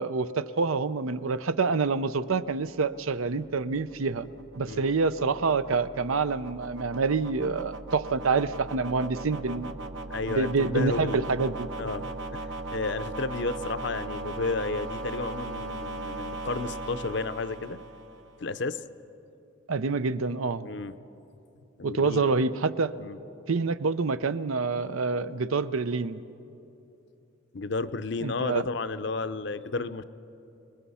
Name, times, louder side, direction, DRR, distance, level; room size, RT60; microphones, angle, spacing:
voice 1, 0.0-4.3 4.6-9.7 10.3-11.7 19.7-20.7 21.8-22.9 23.5-26.2 28.2-28.7, right 4 dB, 85° right, 14 dB, 0.6 m, -27 dB
sound 1, 2.5-18.5, right 2 dB, 60° right, 1.0 m, -39 dB
voice 2, 10.1-11.3 11.8-12.1 12.3-17.8 18.4-18.8 20.6-21.0 21.8-22.3 23.0-23.2 27.5-30.0, left 3 dB, 55° left, 12 dB, 0.6 m, -32 dB
30.0 x 20.0 x 5.6 m, 2.9 s
head